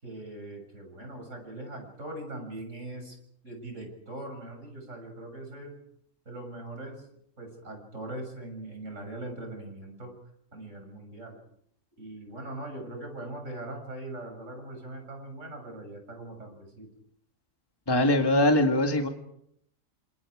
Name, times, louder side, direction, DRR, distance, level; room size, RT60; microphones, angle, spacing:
voice 1, 0.0-3.2 3.4-5.8 6.3-7.0 7.4-10.1 10.5-11.4 12.0-16.9, right 2 dB, 65° right, 3 dB, 7.5 m, -41 dB
voice 2, 17.9-19.1, left 1 dB, 15° left, 4 dB, 1.8 m, -22 dB
29.0 x 27.5 x 4.9 m, 0.72 s
omnidirectional pair, 1.4 m